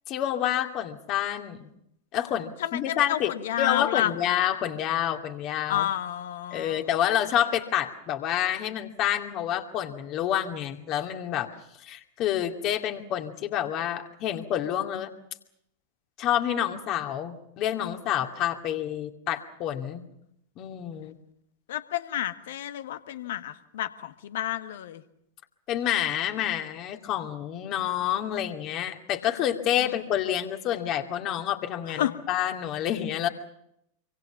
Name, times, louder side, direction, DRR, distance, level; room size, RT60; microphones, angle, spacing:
voice 1, 0.1-1.7 2.1-3.3 3.6-5.9 6.5-11.5 11.8-15.1 16.2-20.0 20.6-21.2 25.7-33.3, left 11 dB, 35° left, 5 dB, 2.4 m, -28 dB
voice 2, 2.6-4.1 5.7-6.9 21.7-25.0 29.8-29.9 32.0-32.1, left 12 dB, 55° left, 11 dB, 1.5 m, -30 dB
26.5 x 24.5 x 5.9 m, 0.78 s
figure-of-eight pair, 90°, 0 cm